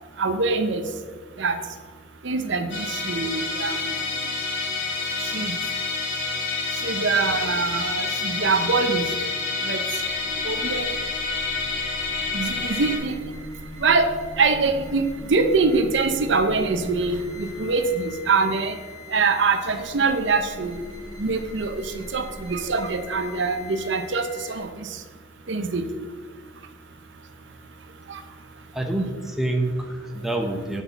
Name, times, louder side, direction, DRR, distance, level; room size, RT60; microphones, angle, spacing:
voice 1, 0.2-0.9 1.4-1.6 2.2-4.0 5.3-5.6 6.8-9.1 9.7-9.8 10.4-10.8 12.3-13.2 13.8-14.1 14.4-15.0 15.3-18.8 19.1-20.8 21.2-21.8 22.1-24.7 25.5-25.8, right 4 dB, 65° right, 8 dB, 0.7 m, -23 dB
Musical instrument, 2.7-13.0, left 4 dB, 70° left, 1.8 m, -28 dB
sound 1, 4.9-24.6, left 1 dB, 20° left, 2.2 m, -43 dB
voice 2, 28.7-30.8, right 1 dB, ahead, 1 dB, 0.7 m, -27 dB
6.2 x 5.4 x 7.0 m, 1.5 s
head